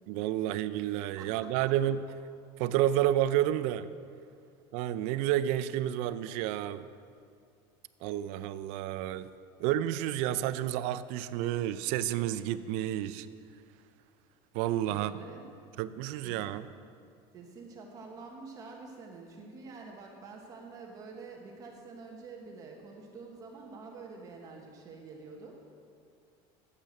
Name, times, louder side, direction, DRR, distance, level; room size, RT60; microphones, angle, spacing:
voice 1, 0.1-2.0 2.6-3.9 4.7-6.9 8.0-9.3 9.6-13.3 14.5-15.1 15.8-16.7, right 12 dB, 60° right, 14 dB, 0.5 m, -30 dB
voice 2, 1.2-1.7 14.9-15.5 16.2-16.5 17.3-25.6, right 4 dB, 30° right, 0 dB, 1.2 m, -47 dB
12.0 x 8.4 x 6.3 m, 2.3 s
cardioid pair, 170°, 13 cm